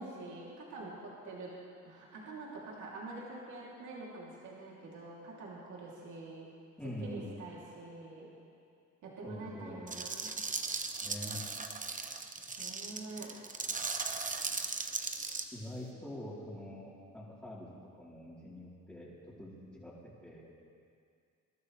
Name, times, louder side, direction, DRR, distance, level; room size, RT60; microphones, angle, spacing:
voice 1, 0.0-1.5 1.8-6.5 7.0-8.3 9.0-10.3 12.6-13.3, right 2 dB, 70° right, -5 dB, 3.0 m, -46 dB
voice 2, 6.8-7.4 9.2-9.8 11.0-11.4 15.5-17.7 18.0-19.9 20.2-20.5, left 1 dB, 5° left, -11 dB, 3.5 m, -45 dB
sound 1, 9.9-15.4, right 4 dB, 25° right, 0.9 m, -37 dB
22.0 x 12.0 x 3.3 m, 2.3 s
cardioid pair, 90°, 30 cm